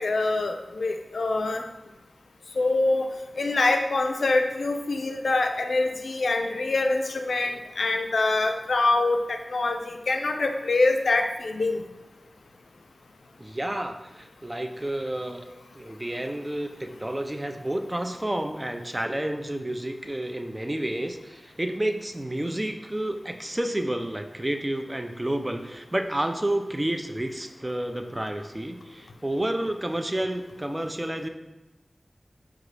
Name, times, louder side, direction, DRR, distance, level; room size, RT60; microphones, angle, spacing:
voice 1, 0.0-1.6 2.6-11.8, left 2 dB, 90° left, 5 dB, 0.3 m, -25 dB
voice 2, 13.4-15.5 15.7-31.3, right 1 dB, 25° right, 6 dB, 0.4 m, -30 dB
4.9 x 2.3 x 3.2 m, 1.1 s
cardioid pair, 40°, 0 cm